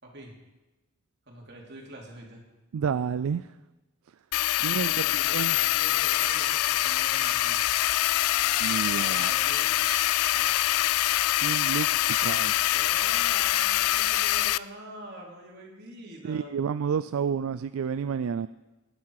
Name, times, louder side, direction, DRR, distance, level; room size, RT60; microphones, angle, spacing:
voice 1, 0.0-0.3 1.3-2.4 4.6-7.6 8.8-9.7 10.3-10.5 12.7-16.5, right 1 dB, 50° right, -1 dB, 3.1 m, -44 dB
voice 2, 2.7-3.5 4.6-4.9 5.3-5.6 8.6-9.3 11.3-11.9 12.2-12.5 16.2-18.5, right 7 dB, 75° right, 14 dB, 0.4 m, -29 dB
sound 1, 4.3-14.6, left 15 dB, 80° left, 0.3 m, -25 dB
sound 2, 5.4-5.7 6.1-6.4 6.7-7.4 8.3-8.8 9.8-10.2 10.9-11.3 11.9-12.3 13.5-13.7, left 1 dB, 25° left, 4.7 m, -41 dB
19.0 x 9.6 x 4.8 m, 1.1 s
head